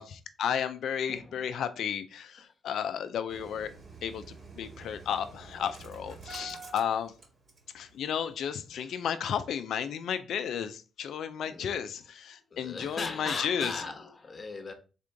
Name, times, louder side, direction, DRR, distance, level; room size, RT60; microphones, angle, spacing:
voice 1, 0.0-3.7 4.0-7.1 7.7-13.8, left 8 dB, 75° left, 0.4 m, -33 dB
Engine starting, 3.3-7.9 8.1-8.2 8.6-8.7, right 4 dB, 55° right, 2.3 m, -47 dB
voice 2, 12.5-14.7, left 3 dB, 45° left, 1.0 m, -38 dB
3.7 x 3.6 x 3.3 m
supercardioid pair, 50°, 0 cm